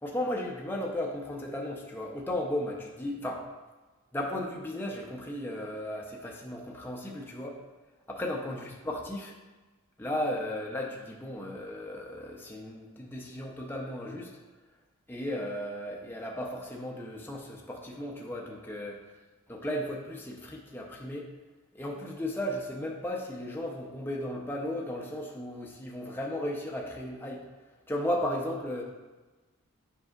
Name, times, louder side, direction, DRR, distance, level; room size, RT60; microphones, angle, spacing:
voice 1, 0.0-3.4 4.1-7.6 8.1-9.3 10.0-14.3 15.1-19.0 19.5-21.3 21.7-27.4 27.9-28.8, left 1 dB, 10° left, -1 dB, 0.6 m, -35 dB
7.8 x 5.4 x 2.4 m, 1.2 s
head